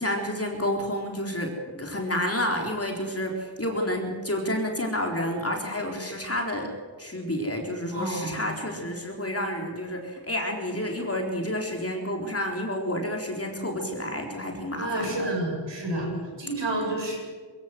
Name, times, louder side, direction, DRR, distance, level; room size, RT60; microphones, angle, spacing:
voice 1, 0.0-6.7 7.0-15.3 15.9-16.2, left 1 dB, 30° left, 1 dB, 4.1 m, -30 dB
voice 2, 7.9-8.4 14.8-16.1 16.4-17.2, right 1 dB, 65° right, 0 dB, 7.4 m, -29 dB
22.5 x 15.5 x 7.9 m, 1.6 s
cardioid pair, 55°, 47 cm